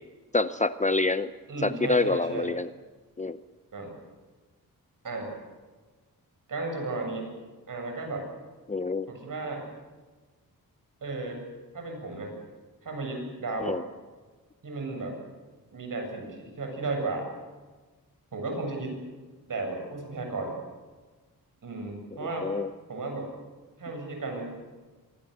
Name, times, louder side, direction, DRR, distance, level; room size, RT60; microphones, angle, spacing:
voice 1, 0.3-1.3 1.6-2.7 3.2-3.4 8.7-9.1 13.6-13.8 22.4-22.7, left 3 dB, 20° left, 12 dB, 0.7 m, -26 dB
voice 2, 1.5-2.5 3.7-3.9 5.0-5.3 6.5-7.3 7.7-8.3 9.1-9.7 11.0-11.4 11.7-12.3 12.8-13.8 14.6-15.1 15.7-17.3 18.3-19.0 19.5-20.6 21.6-22.5 22.9-23.3 23.8-24.5, right 3 dB, 55° right, 3 dB, 7.9 m, -34 dB
25.5 x 22.0 x 6.8 m, 1.3 s
cardioid pair, 85°, 37 cm